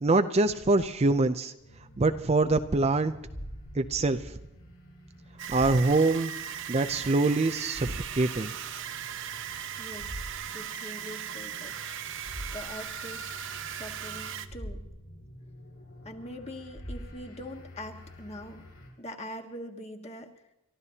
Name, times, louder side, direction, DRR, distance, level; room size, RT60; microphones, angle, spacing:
voice 1, 0.0-1.5 2.0-3.1 3.7-4.4 5.5-6.3 6.7-8.5, right 3 dB, 30° right, 8 dB, 0.5 m, -24 dB
sound 1, 1.6-18.9, equal, 80° left, 7.5 m, -46 dB
sound 2, 5.4-14.5, right 9 dB, 60° right, 0.8 m, -38 dB
voice 2, 9.8-10.2 10.5-11.7 12.5-13.3 13.7-14.8 16.0-18.6 19.0-20.3, left 1 dB, 30° left, 3 dB, 1.5 m, -43 dB
30.0 x 14.0 x 2.8 m, 0.92 s
head